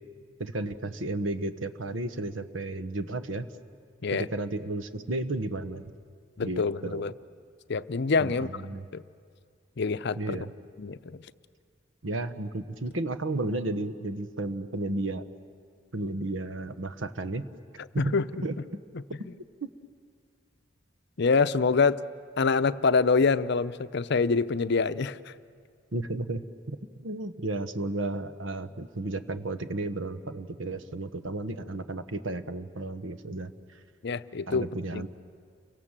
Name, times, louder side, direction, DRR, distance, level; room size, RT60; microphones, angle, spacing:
voice 1, 0.4-3.5 4.1-5.9 6.4-7.1 8.2-8.9 10.2-10.5 12.0-15.3 15.9-17.5 17.9-18.2 18.4-18.6 19.6-19.7 25.9-33.8 34.5-35.1, right 2 dB, 80° right, 10 dB, 1.2 m, -33 dB
voice 2, 6.4-7.1 7.7-8.5 8.9-9.0 9.8-10.4 10.8-11.2 18.0-18.3 21.2-22.0 22.4-25.3 34.0-34.7 34.9-35.0, left 4 dB, 60° left, 14 dB, 0.6 m, -25 dB
30.0 x 24.5 x 7.5 m, 2.1 s
head